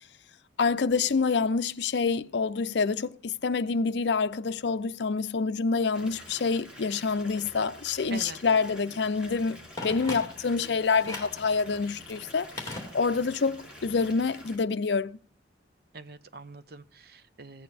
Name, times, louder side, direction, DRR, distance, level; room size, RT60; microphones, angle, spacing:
voice 1, 0.6-15.2, left 4 dB, 65° left, 0.5 m, -27 dB
Water tap faucet / Bathtub (filling or washing) / Fill (with liquid), 5.9-14.6, left 1 dB, 5° right, 2.7 m, -47 dB
Telephone, 9.8-10.6 11.0-11.4 12.6-13.4 13.7-13.8, left 2 dB, 20° left, 2.7 m, -39 dB
voice 2, 15.9-17.6, right 3 dB, 55° right, 0.8 m, -44 dB
15.5 x 8.9 x 4.2 m
head